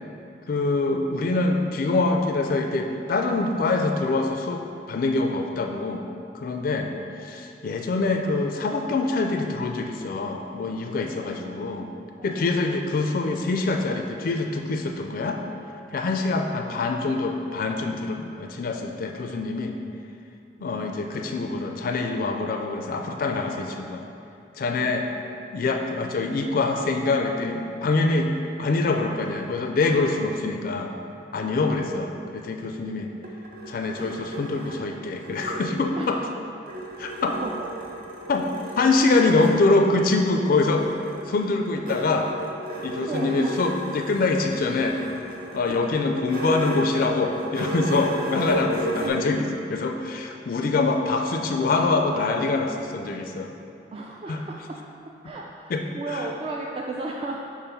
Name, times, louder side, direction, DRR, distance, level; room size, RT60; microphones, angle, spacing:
voice 1, 0.5-6.1 6.3-6.9 7.2-11.9 12.2-15.4 15.9-19.7 20.6-24.0 24.6-25.1 25.5-28.3 28.6-30.9 31.3-33.1 33.7-36.2 37.0-37.3 38.3-38.5 38.8-40.9 41.3-42.3 42.8-45.0 45.5-53.5 54.3-54.4 55.7-56.3, left 3 dB, 55° left, 4 dB, 0.4 m, -25 dB
voice 2, 11.2-11.6 12.2-12.7 20.6-20.7 31.4-31.6 32.8-33.1 35.9-36.1 37.4-37.7 43.1-43.5 45.7-45.9 49.0-49.2 53.9-54.8 55.2-57.4, right 3 dB, 30° right, -1 dB, 0.3 m, -35 dB
sound 1, 33.0-36.3 36.7-39.6 40.5-49.1, right 1 dB, 55° right, 0.8 m, -34 dB
6.9 x 2.5 x 5.4 m, 2.6 s
head